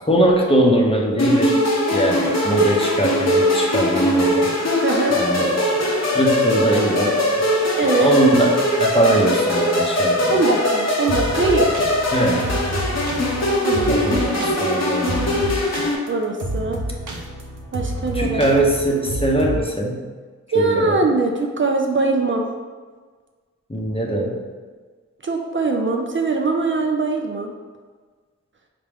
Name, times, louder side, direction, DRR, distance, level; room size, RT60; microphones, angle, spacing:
voice 1, 0.1-1.6 1.9-4.5 5.1-5.5 6.1-7.1 8.0-10.4 12.1-12.4 13.9-15.4 18.1-20.1 20.5-21.0 23.7-24.4, right 1 dB, 20° left, -1 dB, 0.7 m, -20 dB
sound 1, 1.2-15.9, left 1 dB, 60° left, 0.9 m, -21 dB
sound 2, 3.3-4.8 5.7-10.1 11.1-19.7, right 1 dB, 80° right, 0.6 m, -31 dB
voice 2, 4.8-5.2 7.8-8.1 10.3-11.7 13.6-14.0 16.1-16.8 17.7-18.6 20.5-22.5 25.2-27.5, right 3 dB, 40° right, 1 dB, 0.4 m, -21 dB
4.9 x 2.1 x 3.5 m, 1.5 s
cardioid pair, 40°, 30 cm